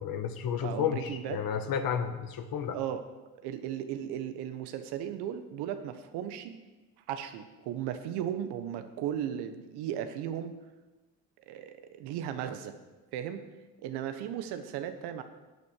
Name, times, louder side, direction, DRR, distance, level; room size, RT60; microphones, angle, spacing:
voice 1, 0.0-2.8, left 7 dB, 60° left, 7 dB, 1.6 m, -32 dB
voice 2, 0.6-1.4 2.7-3.0 3.4-6.5 7.1-10.5 11.5-12.7 13.1-13.4 13.8-15.2, right 10 dB, 75° right, 9 dB, 1.3 m, -36 dB
11.5 x 8.7 x 6.5 m, 1.1 s
hypercardioid pair, 65°, 39 cm